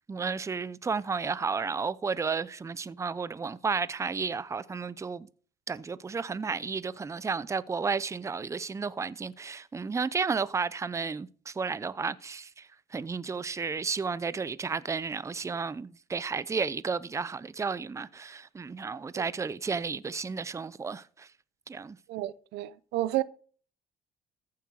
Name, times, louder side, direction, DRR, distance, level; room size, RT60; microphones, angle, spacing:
voice 1, 0.1-5.3 5.7-21.3 21.7-22.0, right 5 dB, 15° right, 0.5 m, -32 dB
voice 2, 22.1-23.2, right 15 dB, 85° right, 0.7 m, -31 dB
14.5 x 7.6 x 4.8 m
cardioid pair, 110°, 17 cm